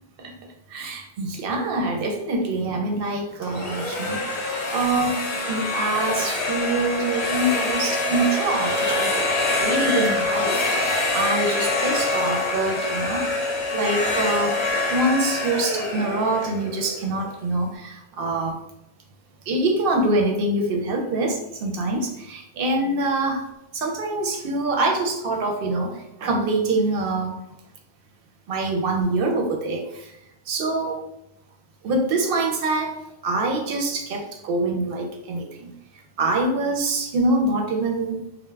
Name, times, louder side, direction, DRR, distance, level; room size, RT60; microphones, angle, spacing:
voice 1, 0.7-14.6 14.9-18.6 19.5-23.5 23.7-27.4 28.5-30.2 30.5-31.0 31.8-33.0 33.2-35.7 36.2-38.2, right 2 dB, 65° right, 2 dB, 0.7 m, -25 dB
sound 1, 3.4-17.3, left 2 dB, 50° left, 0.5 m, -25 dB
2.3 x 2.0 x 3.1 m, 0.84 s
omnidirectional pair, 1.1 m